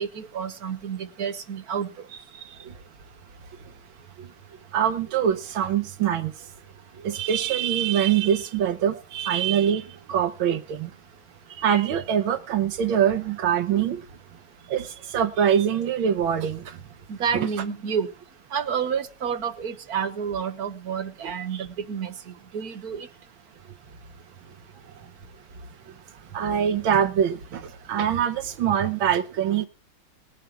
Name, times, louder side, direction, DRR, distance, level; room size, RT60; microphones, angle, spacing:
voice 1, 0.0-1.9 17.1-18.1 18.5-22.1 22.5-23.1, right 7 dB, 55° right, 1.5 m, -29 dB
voice 2, 4.7-6.3 7.0-10.9 11.6-14.0 14.7-14.9 15.1-16.6 21.2-21.3 26.3-29.7, right 9 dB, 85° right, 1.8 m, -24 dB
18.5 x 8.9 x 5.8 m
omnidirectional pair, 2.1 m